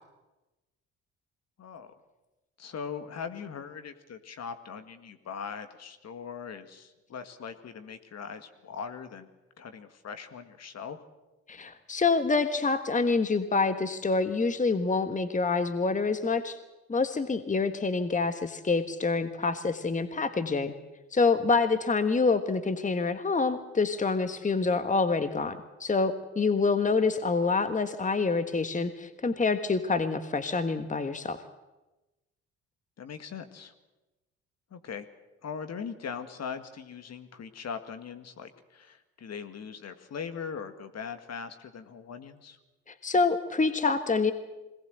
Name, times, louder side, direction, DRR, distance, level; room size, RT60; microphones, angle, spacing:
voice 1, 1.6-1.9 2.6-9.3 9.6-11.0 33.0-33.7 34.7-35.1 35.4-42.6, left 6 dB, 50° left, 8 dB, 1.9 m, -40 dB
voice 2, 11.5-16.6 16.9-20.7 21.1-31.4 42.9-44.3, left 4 dB, 25° left, 10 dB, 1.5 m, -27 dB
21.5 x 18.5 x 7.9 m, 1.1 s
hypercardioid pair, 50°, 33 cm